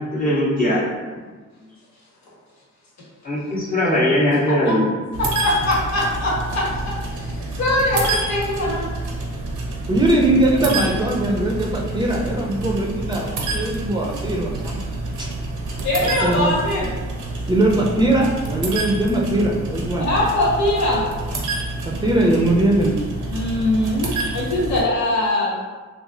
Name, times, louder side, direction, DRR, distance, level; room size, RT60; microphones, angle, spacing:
voice 1, 0.1-0.9 3.2-4.9, left 1 dB, 30° left, -7 dB, 0.7 m, -19 dB
voice 2, 4.5-4.8 5.2-8.9 15.8-16.9 20.0-21.0 23.3-25.6, left 1 dB, 65° left, -5 dB, 1.0 m, -22 dB
sound 1, 5.1-24.8, right 2 dB, 90° right, 0.6 m, -28 dB
voice 3, 9.9-14.8 15.2-15.3 16.2-16.5 17.5-20.1 21.8-22.9, right 1 dB, 15° right, -2 dB, 0.5 m, -20 dB
3.0 x 2.4 x 2.5 m, 1.3 s
cardioid pair, 80°, 30 cm